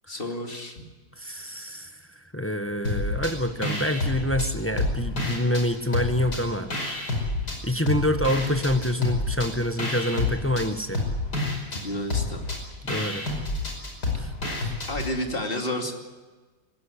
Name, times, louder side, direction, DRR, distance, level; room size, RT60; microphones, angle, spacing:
voice 1, 0.1-0.8 11.7-12.5 14.9-15.9, left 1 dB, 30° left, 3 dB, 2.8 m, -31 dB
voice 2, 1.2-2.0 2.3-6.7 7.6-11.0 12.8-13.3 14.2-14.3 14.6-14.7, left 1 dB, 10° left, 7 dB, 0.8 m, -26 dB
sound 1, 2.8-3.3 3.6-5.6 5.9-7.6 7.9-15.1, left 2 dB, 60° left, 5.9 m, -29 dB
19.5 x 16.5 x 9.9 m, 1.3 s
omnidirectional pair, 2.0 m